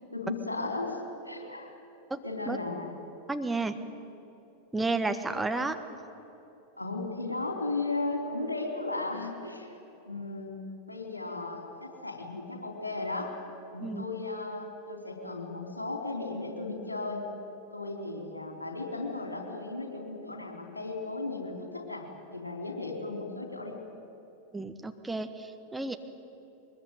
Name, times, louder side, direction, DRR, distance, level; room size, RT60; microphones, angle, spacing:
voice 1, 0.1-1.7 2.2-2.9 5.5-5.7 6.8-9.8 10.0-10.6 10.9-13.4 13.7-17.3 17.7-23.8, left 3 dB, 85° left, 2 dB, 3.8 m, -35 dB
voice 2, 3.3-3.8 4.7-5.8 13.8-14.0 24.5-26.0, right 3 dB, 10° right, 7 dB, 1.3 m, -31 dB
22.0 x 21.0 x 9.3 m, 2.9 s
figure-of-eight pair, 90°, 0 cm